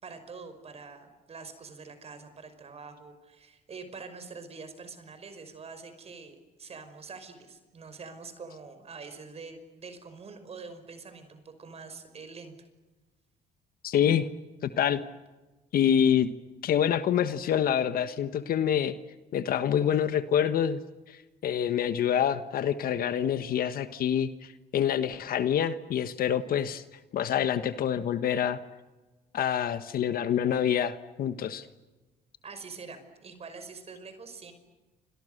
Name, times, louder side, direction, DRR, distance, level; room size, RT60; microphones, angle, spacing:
voice 1, 0.0-12.5 32.4-34.5, right 4 dB, 35° right, 9 dB, 5.5 m, -45 dB
voice 2, 13.8-14.3 14.6-15.0 15.7-16.3 16.6-18.9 19.3-20.8 21.1-26.8 27.1-28.6 29.3-31.7, left 9 dB, 60° left, 11 dB, 1.4 m, -26 dB
30.0 x 27.5 x 6.7 m, 1.1 s
cardioid pair, 110°, 17 cm